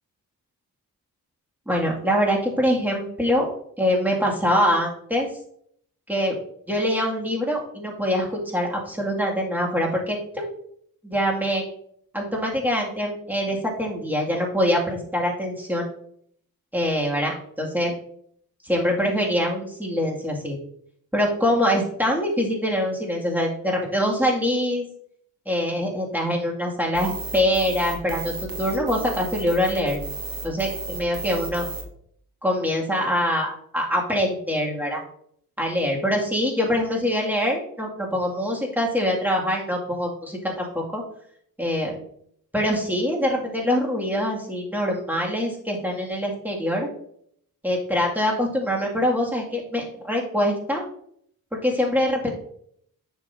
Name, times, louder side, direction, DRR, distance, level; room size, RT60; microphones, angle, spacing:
voice 1, 1.7-3.5 3.8-5.3 6.1-6.4 6.7-10.5 11.0-11.6 12.1-15.9 16.7-17.9 18.6-20.6 21.1-24.8 25.5-30.0 30.4-31.7 32.4-35.0 35.6-41.0 41.6-42.0 42.5-46.9 47.6-50.9 51.5-52.3, equal, 5° right, -2 dB, 2.2 m, -24 dB
sound 1, 26.9-31.8, right 2 dB, 65° right, 1.5 m, -34 dB
9.6 x 6.5 x 2.7 m, 0.67 s
wide cardioid pair, 80°, 38 cm